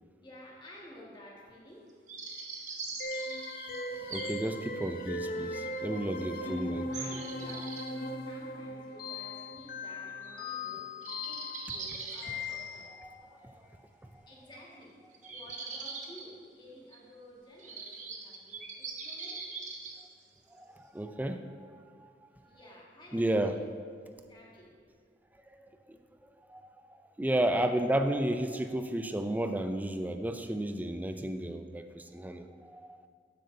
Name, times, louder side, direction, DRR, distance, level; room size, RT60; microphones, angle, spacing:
voice 1, 0.2-1.9 6.3-12.9 14.3-15.0 15.3-19.4 22.3-23.7 24.2-24.8 27.7-27.8, left 1 dB, 25° left, -4 dB, 1.7 m, -52 dB
sound 1, 2.1-4.3 4.8-4.9 5.7-5.8 6.9-7.9 10.2-10.4 10.6-10.7 11.0-12.9 15.1-16.2 16.9-17.0 17.6-20.0, right 4 dB, 45° right, 1.0 m, -42 dB
sound 2, 3.0-13.2, left 2 dB, 55° left, 0.7 m, -38 dB
voice 2, 3.9-6.8 13.0-14.2 20.0-20.1 20.5-22.1 23.1-23.6 25.5-25.6 25.9-26.0 26.5-33.1, right 1 dB, 10° right, 7 dB, 0.4 m, -33 dB
12.0 x 7.6 x 2.7 m, 2.1 s
head